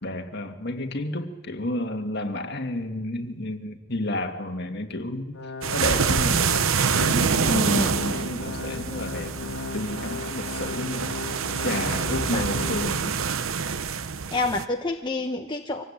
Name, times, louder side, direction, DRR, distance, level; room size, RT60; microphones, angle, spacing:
voice 1, 0.0-5.4 5.7-6.4 7.0-11.1 11.6-13.2, left 1 dB, 50° left, 4 dB, 2.1 m, -31 dB
Organ, 5.3-13.4 13.8-13.9 14.5-14.6, left 3 dB, 75° left, 1.7 m, -36 dB
sound 1, 5.6-14.6, right 6 dB, 75° right, 0.8 m, -26 dB
voice 2, 7.4-8.0 12.3-12.5 14.3-15.8, left 2 dB, 20° left, 2 dB, 1.0 m, -27 dB
24.0 x 19.0 x 8.8 m, 1.1 s
head